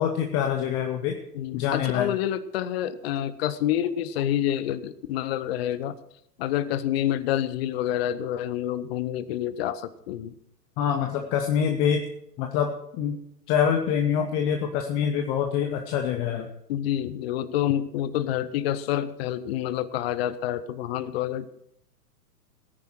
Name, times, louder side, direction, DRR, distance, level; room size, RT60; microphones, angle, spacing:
voice 1, 0.0-1.2 1.5-2.1 10.8-12.0 12.4-13.2 13.5-16.5, left 8 dB, 10° left, 4 dB, 0.4 m, -25 dB
voice 2, 1.3-6.0 6.4-10.4 16.7-21.5, left 11 dB, 40° left, 14 dB, 0.8 m, -28 dB
18.0 x 10.0 x 4.6 m, 0.75 s
figure-of-eight pair, 105°, 47 cm